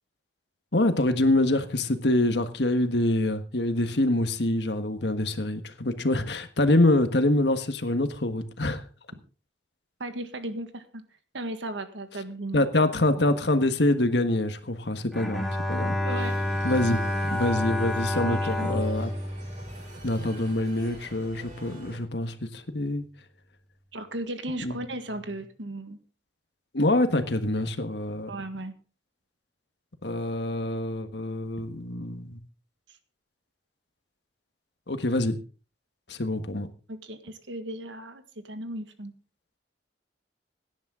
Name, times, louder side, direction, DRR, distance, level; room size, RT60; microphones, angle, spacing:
voice 1, 0.7-8.8 12.5-16.0 16.6-17.0 17.3-19.1 20.0-23.1 24.6-24.8 26.7-28.3 30.0-32.4 34.9-35.4 36.1-36.7, left 1 dB, 70° left, 9 dB, 1.5 m, -25 dB
voice 2, 10.0-11.0 11.3-12.6 16.0-16.3 18.2-18.8 23.9-26.0 28.3-28.7 36.9-39.1, right 1 dB, 85° right, 9 dB, 1.7 m, -36 dB
Bowed string instrument, 15.1-20.4, left 1 dB, ahead, 2.0 m, -29 dB
sound 1, 16.2-22.0, right 1 dB, 40° right, 5.8 m, -46 dB
17.0 x 10.5 x 3.8 m, 0.35 s
head